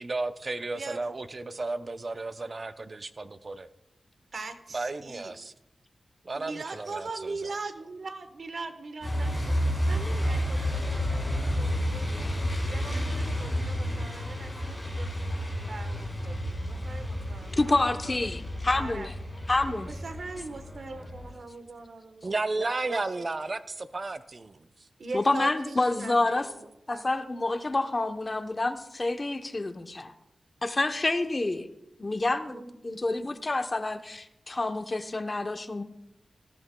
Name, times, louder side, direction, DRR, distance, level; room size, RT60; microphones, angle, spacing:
voice 1, 0.0-3.7 4.7-5.5 6.2-7.4 22.2-24.6, right 3 dB, 35° right, 11 dB, 0.5 m, -33 dB
voice 2, 0.7-1.1 4.3-5.3 6.3-9.5 9.8-12.3 12.6-15.2 15.7-18.3 18.7-19.1 19.9-23.3 25.0-27.1 32.4-32.7, right 3 dB, 60° right, 9 dB, 1.0 m, -41 dB
Truck, 9.0-21.3, equal, ahead, 5.1 m, -31 dB
voice 3, 17.6-19.1 19.5-19.9 25.1-26.5 26.9-30.1 30.6-31.7 32.0-35.8, left 2 dB, 30° left, 8 dB, 0.8 m, -28 dB
18.5 x 14.0 x 2.2 m, 0.84 s
wide cardioid pair, 130°, 0 cm